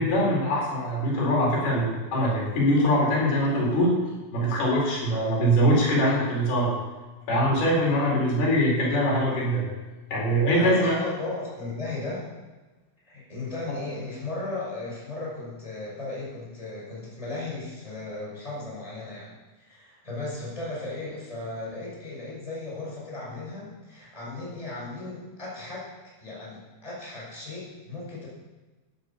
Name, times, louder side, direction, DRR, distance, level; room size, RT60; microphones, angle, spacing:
voice 1, 0.0-3.9 4.3-6.7 7.3-9.6 10.1-11.0, equal, 80° left, -3 dB, 6.2 m, -23 dB
voice 2, 10.5-12.3 13.1-19.3 19.6-25.9 26.2-28.3, left 2 dB, 10° left, -5 dB, 5.6 m, -36 dB
13.5 x 10.5 x 7.1 m, 1.2 s
omnidirectional pair, 4.4 m